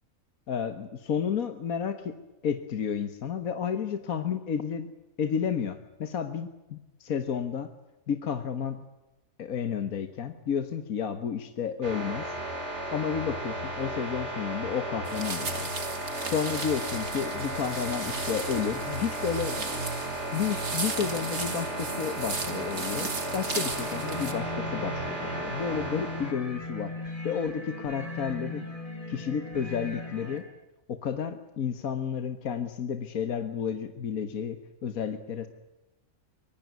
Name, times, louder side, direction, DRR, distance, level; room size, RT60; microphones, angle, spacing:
voice 1, 0.5-4.9 5.2-7.7 8.1-8.8 9.4-12.3 12.9-15.7 16.2-19.8 20.3-26.9 27.2-28.7 29.1-30.5 30.9-35.5, left 7 dB, 65° left, 9 dB, 1.7 m, -31 dB
sound 1, 11.8-26.3, right 1 dB, 45° right, 3.9 m, -34 dB
sound 2, 15.0-24.3, right 4 dB, 70° right, 3.2 m, -36 dB
sound 3, 23.7-30.4, left 2 dB, 20° left, 4.7 m, -39 dB
24.5 x 20.0 x 9.4 m, 1.0 s
omnidirectional pair, 1.6 m